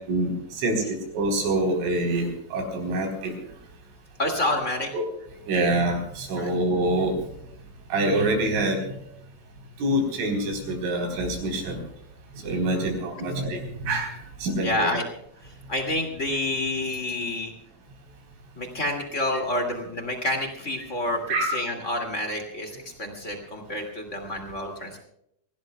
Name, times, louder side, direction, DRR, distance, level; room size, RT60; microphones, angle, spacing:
voice 1, 0.1-3.3 4.9-5.0 5.5-7.2 7.9-8.9 9.8-11.8 12.4-14.1 14.4-14.9 21.3-21.5, right 1 dB, 85° right, 2 dB, 6.5 m, -25 dB
voice 2, 4.2-4.9 6.3-6.5 12.7-12.9 14.6-15.0 15.7-17.5 18.5-21.2 21.5-25.0, left 1 dB, 30° left, 3 dB, 1.2 m, -28 dB
26.0 x 17.5 x 2.3 m, 0.75 s
omnidirectional pair, 5.5 m